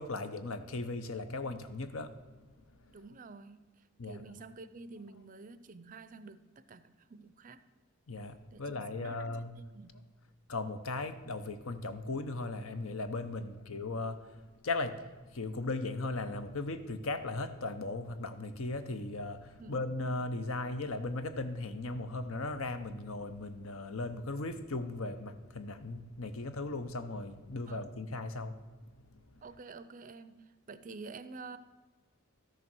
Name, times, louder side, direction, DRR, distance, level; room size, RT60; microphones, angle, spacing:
voice 1, 0.0-2.1 4.0-4.2 8.1-9.6 10.5-14.3 14.6-28.6, left 2 dB, 70° left, 0.8 m, -37 dB
voice 2, 2.9-7.6 8.5-10.1 13.4-13.5 19.6-19.8 27.7-27.9 29.4-31.6, right 4 dB, 35° right, 0.5 m, -50 dB
13.0 x 6.8 x 6.1 m
head